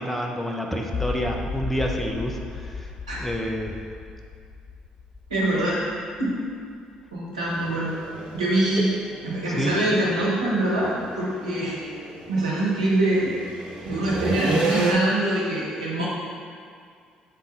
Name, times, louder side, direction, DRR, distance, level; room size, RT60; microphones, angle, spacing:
voice 1, 0.0-2.9 3.2-3.8 9.6-9.7, equal, 5° left, 0 dB, 0.9 m, -28 dB
sound 1, 0.9-7.0, left 4 dB, 40° left, 0.6 m, -35 dB
voice 2, 5.3-5.8 6.2-6.4 7.1-7.9 8.3-8.9 9.2-11.8 12.3-13.3 13.8-16.1, right 1 dB, 90° right, -6 dB, 1.1 m, -24 dB
sound 2, 7.4-14.9, right 2 dB, 60° right, 1.4 m, -32 dB
7.5 x 3.9 x 4.1 m, 2.2 s
hypercardioid pair, 50°, 3 cm